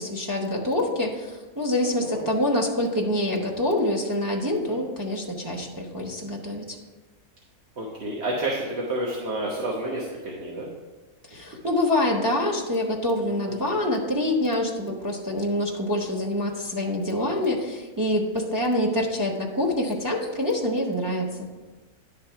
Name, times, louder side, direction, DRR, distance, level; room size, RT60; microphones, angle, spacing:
voice 1, 0.0-6.8 11.3-21.5, left 1 dB, 15° right, 0 dB, 0.8 m, -26 dB
voice 2, 1.9-2.3 4.7-4.8 7.8-10.7 13.2-13.7, right 1 dB, 50° right, -3 dB, 1.3 m, -30 dB
10.5 x 3.8 x 5.7 m, 1.2 s
omnidirectional pair, 1.5 m